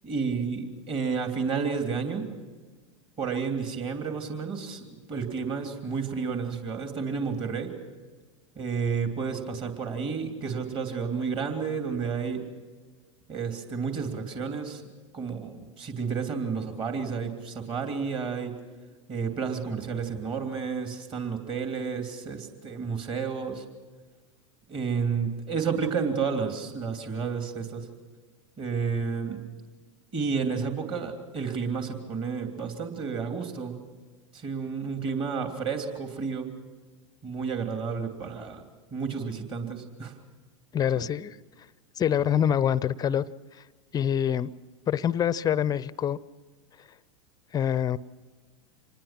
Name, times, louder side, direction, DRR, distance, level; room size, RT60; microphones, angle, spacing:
voice 1, 0.0-2.3 3.2-7.7 8.6-12.5 13.3-14.8 15.1-18.5 19.1-23.6 24.7-27.9 28.6-29.4 30.1-33.8 34.3-36.5 37.2-38.6 38.9-40.1 40.9-41.0, right 5 dB, 35° right, 4 dB, 3.1 m, -31 dB
voice 2, 40.7-41.4 42.0-43.3 43.5-43.6 43.9-44.5 44.9-46.2 47.5-48.0, left 9 dB, 25° left, 19 dB, 0.6 m, -25 dB
26.5 x 20.0 x 6.1 m, 1.4 s
hypercardioid pair, 95°, 16 cm